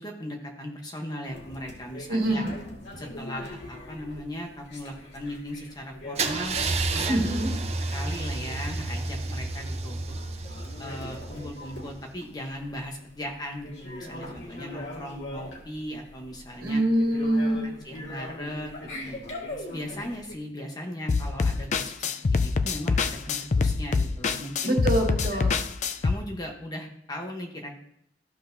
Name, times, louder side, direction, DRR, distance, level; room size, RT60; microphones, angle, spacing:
voice 1, 0.0-2.5 3.0-6.6 6.9-7.4 7.9-10.0 10.8-16.8 17.8-19.2 19.6-24.8 25.3-25.4 26.0-27.7, equal, 20° left, 1 dB, 1.0 m, -38 dB
sound 1, 1.3-20.4, left 1 dB, 80° left, 2.0 m, -42 dB
voice 2, 2.1-2.5 7.1-7.5 16.6-17.6 24.6-25.5, right 1 dB, 50° right, -2 dB, 2.1 m, -24 dB
Car / Engine starting / Idling, 6.2-12.0, right 3 dB, 35° right, 0.6 m, -31 dB
sound 2, 21.1-26.1, left 4 dB, 40° left, 0.4 m, -25 dB
14.0 x 6.2 x 2.7 m, 0.74 s
head